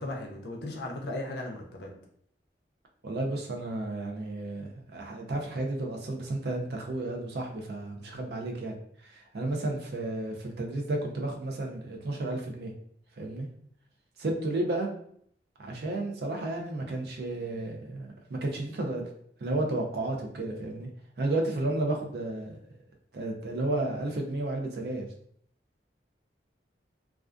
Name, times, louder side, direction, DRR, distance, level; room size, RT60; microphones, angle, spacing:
voice 1, 0.0-1.9, left 2 dB, 65° left, 1 dB, 0.5 m, -36 dB
voice 2, 3.0-8.8 9.0-12.7 13.2-13.5 14.2-14.9 15.6-19.0 19.4-20.9 21.2-22.6 23.1-25.1, right 2 dB, 65° right, 1 dB, 0.4 m, -32 dB
2.3 x 2.2 x 2.4 m, 0.66 s
head